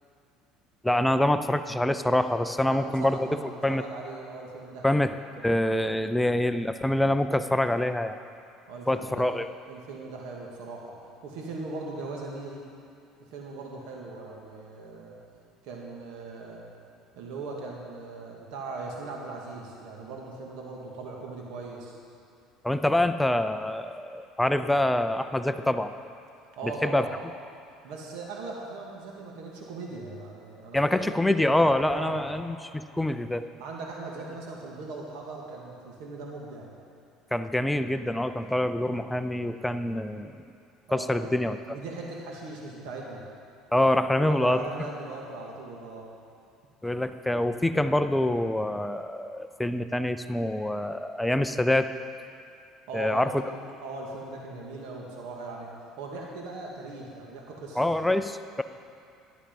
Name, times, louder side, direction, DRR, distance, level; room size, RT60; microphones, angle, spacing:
voice 1, 0.8-3.3 3.6-3.8 4.8-5.1 5.4-8.2 8.9-9.5 22.6-25.9 26.8-27.1 30.7-33.5 37.3-40.3 40.9-41.6 43.7-44.6 46.8-51.9 52.9-53.3 57.8-58.6, left 1 dB, 5° left, 10 dB, 0.5 m, -25 dB
voice 2, 2.6-5.1 8.7-9.3 9.7-12.7 13.3-15.2 15.6-16.7 17.2-22.0 26.6-27.1 27.8-31.2 31.9-32.2 33.6-36.7 40.9-41.3 41.7-43.2 44.2-46.1 52.9-55.7 56.0-57.8, right 3 dB, 80° right, -2 dB, 2.0 m, -39 dB
13.0 x 11.5 x 5.3 m, 2.4 s
cardioid pair, 115°, 0 cm